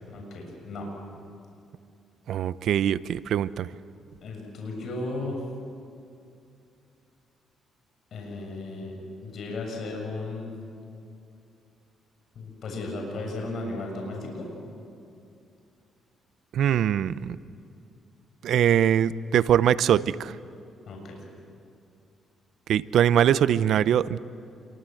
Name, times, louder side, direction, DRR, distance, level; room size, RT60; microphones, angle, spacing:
voice 1, 0.1-0.9 4.2-5.5 8.1-9.0 9.2-10.5 12.4-14.5 20.9-21.2, left 2 dB, 60° left, 1 dB, 7.1 m, -35 dB
voice 2, 2.3-3.7 16.5-17.4 18.4-20.3 22.7-24.2, right 10 dB, 70° right, 16 dB, 0.7 m, -22 dB
28.5 x 23.5 x 7.8 m, 2.6 s
cardioid pair, 90°, 0 cm